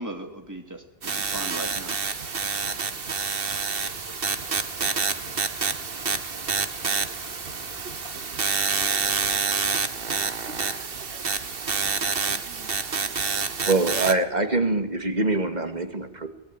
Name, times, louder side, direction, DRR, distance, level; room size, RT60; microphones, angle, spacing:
voice 1, 0.0-2.8, right 1 dB, 15° right, 4 dB, 2.8 m, -39 dB
sound 1, 1.0-14.1, right 5 dB, 65° right, 1.6 m, -28 dB
Engine / Tools, 2.1-9.5, left 2 dB, 30° left, 3.0 m, -48 dB
voice 2, 7.8-9.2 9.7-11.2 12.3-12.7, right 5 dB, 90° right, 12 dB, 1.6 m, -49 dB
voice 3, 13.7-16.3, right 2 dB, 45° right, 8 dB, 2.5 m, -24 dB
23.0 x 19.5 x 9.8 m, 0.90 s
omnidirectional pair, 1.1 m